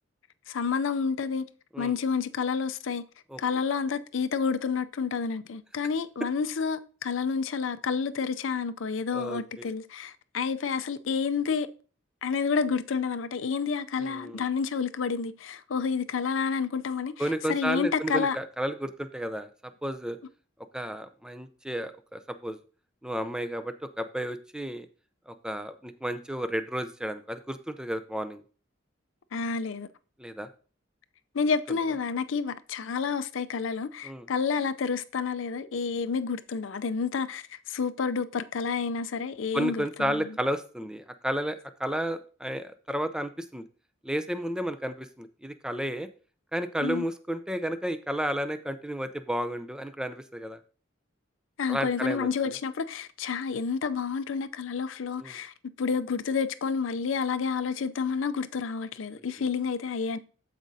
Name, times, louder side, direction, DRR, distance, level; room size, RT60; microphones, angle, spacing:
voice 1, 0.5-1.5 1.8-3.0 3.4-11.7 12.2-18.4 29.3-29.9 31.3-40.4 46.8-47.1 51.6-60.2, left 5 dB, 75° left, 0.5 m, -29 dB
voice 2, 14.0-14.4 17.2-19.5 19.8-20.2 20.7-22.6 23.0-24.9 25.3-28.4 30.2-30.5 34.0-34.3 39.5-43.6 44.0-46.1 46.5-50.6 51.7-52.3 55.2-55.3, equal, 5° right, 0.5 m, -32 dB
13.5 x 5.1 x 2.7 m
head